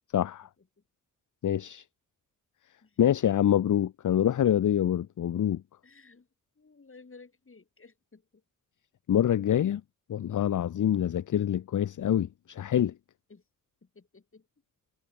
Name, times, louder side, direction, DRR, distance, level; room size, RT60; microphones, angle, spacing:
voice 1, 0.1-0.5 1.4-1.8 3.0-5.6 9.1-9.8 10.1-12.9, left 10 dB, 65° left, 0.5 m, -26 dB
voice 2, 5.8-6.3 6.6-8.2 13.3-13.4 13.8-14.5, left 4 dB, 40° left, 7.0 m, -54 dB
wide cardioid pair, 155°, 33 cm